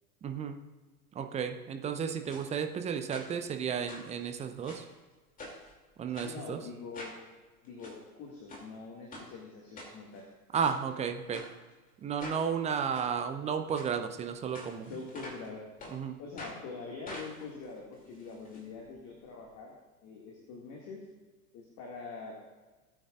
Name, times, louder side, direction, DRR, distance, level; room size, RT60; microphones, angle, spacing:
voice 1, 0.2-0.6 1.1-4.8 6.0-6.6 10.5-11.4 12.0-14.9 15.9-16.2, right 7 dB, 15° right, 6 dB, 0.7 m, -33 dB
sound 1, 2.3-2.5 3.1-3.6 3.9-4.9 5.4-5.7 6.1-6.3 6.9-7.2 7.6-8.0 8.5-8.7 9.1-9.3 9.8-10.2 10.6-10.8 11.3-11.5 12.2-12.4 12.9-13.1 13.7-13.9 14.5-15.5 15.8-16.0 16.4-16.6 17.1-18.6 18.9-19.0 19.2-19.3, left 1 dB, 20° left, 2.6 m, -46 dB
voice 2, 6.2-7.2 7.6-10.3 14.9-15.6 16.2-19.7 20.0-21.0 21.5-22.3, left 4 dB, 35° left, -1 dB, 2.1 m, -44 dB
18.5 x 8.7 x 2.5 m, 1.3 s
figure-of-eight pair, 90°, 45 cm